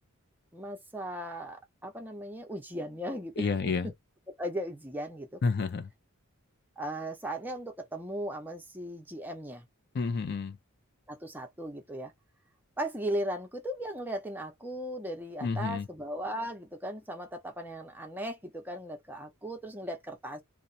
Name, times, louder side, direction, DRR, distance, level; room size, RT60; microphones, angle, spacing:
voice 1, 0.5-3.9 4.4-5.4 6.8-9.6 11.1-12.1 12.8-20.4, right 1 dB, 10° right, 0.6 m, -37 dB
voice 2, 3.4-3.9 5.4-5.9 9.9-10.6 15.4-15.9, left 4 dB, 50° left, 0.4 m, -30 dB
2.9 x 2.1 x 2.6 m
head